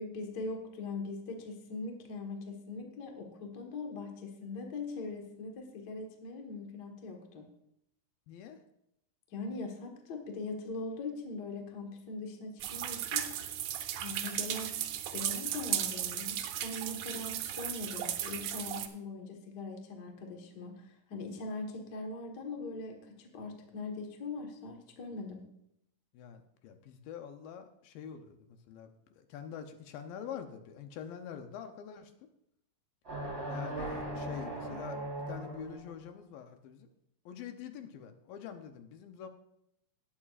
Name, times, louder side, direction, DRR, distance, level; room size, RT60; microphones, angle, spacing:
voice 1, 0.0-7.5 9.3-13.3 14.0-14.8 15.1-25.4, left 3 dB, 55° left, 3 dB, 1.1 m, -41 dB
voice 2, 8.3-8.6 26.1-32.1 33.5-35.0 35.3-36.9 37.3-39.3, left 8 dB, 80° left, 7 dB, 2.5 m, -45 dB
sound 1, 12.6-18.9, right 11 dB, 80° right, 1.8 m, -36 dB
sound 2, 33.0-35.9, right 1 dB, 20° right, 3.8 m, -38 dB
18.5 x 8.7 x 2.5 m, 0.79 s
omnidirectional pair, 4.2 m